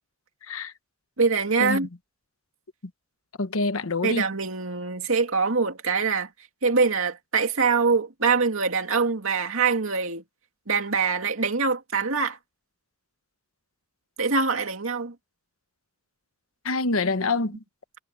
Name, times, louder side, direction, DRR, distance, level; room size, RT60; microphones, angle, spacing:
voice 1, 1.2-1.9 4.0-6.3 6.6-10.2 10.7-12.4 14.2-15.1, right 4 dB, 70° right, 2.6 m, -24 dB
voice 2, 3.4-4.3 16.6-17.5, left 3 dB, 70° left, 1.2 m, -26 dB
head